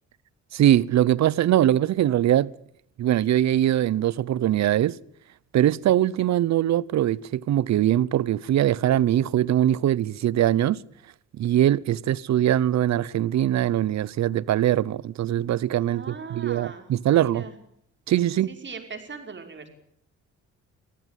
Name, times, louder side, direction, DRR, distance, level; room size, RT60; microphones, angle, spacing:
voice 1, 0.5-2.5 3.0-5.0 5.5-10.8 11.4-17.4 18.1-18.5, right 12 dB, 65° right, 0.8 m, -22 dB
voice 2, 15.9-16.9 17.2-17.5 18.5-19.7, right 5 dB, 40° right, 5.3 m, -39 dB
23.5 x 15.0 x 9.3 m
cardioid pair, 90°, 30 cm